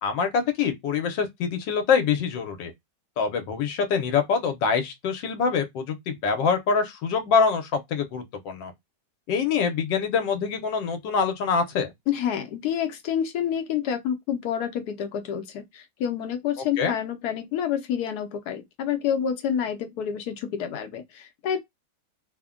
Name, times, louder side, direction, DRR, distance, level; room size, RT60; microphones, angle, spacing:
voice 1, 0.0-2.7 3.2-8.7 9.3-11.9 16.8-16.9, left 6 dB, 85° left, 1.4 m, -25 dB
voice 2, 12.1-21.6, left 9 dB, 70° left, 1.0 m, -28 dB
3.3 x 2.1 x 2.3 m
omnidirectional pair, 1.9 m